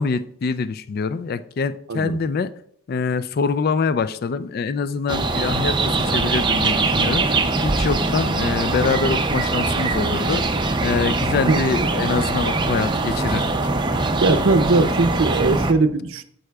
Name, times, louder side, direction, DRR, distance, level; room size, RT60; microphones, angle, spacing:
voice 1, 0.0-2.5 2.9-10.6 10.8-13.5, left 5 dB, 45° left, 0.3 m, -24 dB
sound 1, 5.1-15.7, right 3 dB, 20° right, 0.4 m, -22 dB
voice 2, 14.2-16.2, right 3 dB, 65° right, 0.6 m, -19 dB
11.0 x 7.6 x 2.3 m
head